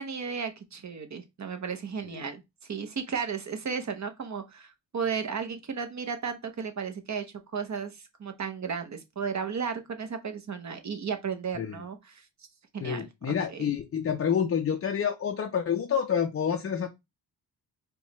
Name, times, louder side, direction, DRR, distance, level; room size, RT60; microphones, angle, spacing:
voice 1, 0.0-2.4 2.7-7.3 7.5-12.3 12.7-13.7, right 6 dB, 40° right, 0.7 m, -34 dB
voice 2, 12.8-16.9, left 7 dB, 35° left, 0.4 m, -28 dB
4.4 x 2.2 x 2.9 m
cardioid pair, 80°, 43 cm